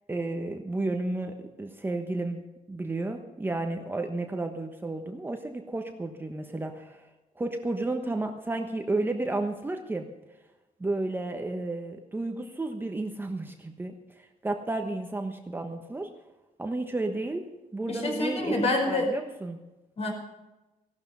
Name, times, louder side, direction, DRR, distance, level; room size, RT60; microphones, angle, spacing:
voice 1, 0.1-7.1 7.4-10.1 10.8-16.1 16.6-18.6 18.9-19.6, right 2 dB, 15° right, 4 dB, 1.1 m, -32 dB
voice 2, 17.9-19.1 20.0-20.1, left 2 dB, 45° left, 0 dB, 4.9 m, -27 dB
16.0 x 12.5 x 5.5 m, 1.0 s
wide cardioid pair, 150°, 14 cm